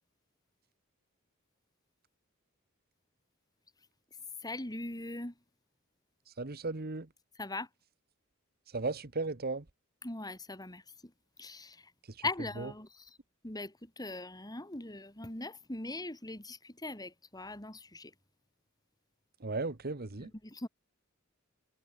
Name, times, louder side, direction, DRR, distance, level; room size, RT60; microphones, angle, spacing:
voice 1, 4.4-5.3 7.4-7.7 10.0-10.8 11.4-11.7 12.2-12.9 13.4-13.7 14.0-18.1 20.2-20.7, left 2 dB, 20° left, 3.2 m, -40 dB
voice 2, 6.4-7.1 8.7-9.6 12.6-12.7 19.4-20.3, right 3 dB, 50° right, 1.3 m, -35 dB
head